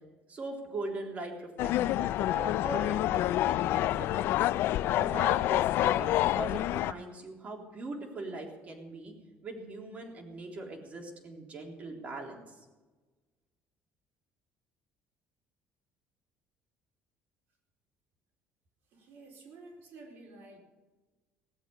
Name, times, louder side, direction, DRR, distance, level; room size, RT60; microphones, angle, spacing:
voice 1, 0.3-4.5 4.9-9.1 9.4-12.6, right 2 dB, 35° right, 1 dB, 3.6 m, -41 dB
sound 1, 1.6-6.9, left 14 dB, 65° left, 0.4 m, -27 dB
voice 2, 18.9-20.6, right 3 dB, 55° right, 1 dB, 4.5 m, -51 dB
18.0 x 8.1 x 8.4 m, 1.2 s
cardioid pair, 135°, 4 cm